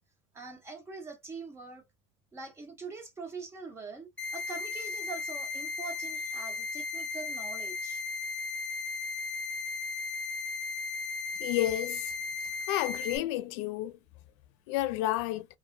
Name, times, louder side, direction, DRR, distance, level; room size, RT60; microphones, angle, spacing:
voice 1, 0.3-1.8 2.3-8.0, right 4 dB, 15° right, 0.9 m, -43 dB
sound 1, 4.2-13.2, left 4 dB, 10° left, 0.6 m, -36 dB
voice 2, 11.4-12.1 12.7-13.9 14.7-15.5, left 15 dB, 85° left, 0.5 m, -30 dB
2.9 x 2.4 x 2.5 m
cardioid pair, 160°, 15 cm